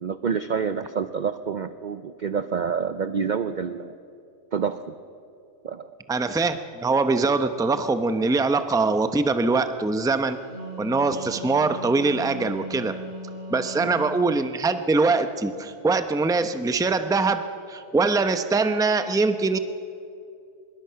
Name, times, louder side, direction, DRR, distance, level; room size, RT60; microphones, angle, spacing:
voice 1, 0.0-4.0 4.5-4.8 5.6-5.9 13.6-13.7, right 6 dB, 50° right, 11 dB, 0.5 m, -28 dB
voice 2, 6.1-10.4 10.8-13.0 13.5-17.4 17.7-19.6, right 3 dB, 5° right, 9 dB, 0.5 m, -23 dB
Wind instrument woodwind instrument, 10.3-14.5, equal, 70° right, 6.9 m, -38 dB
24.5 x 22.0 x 5.8 m, 2.6 s
omnidirectional pair, 1.4 m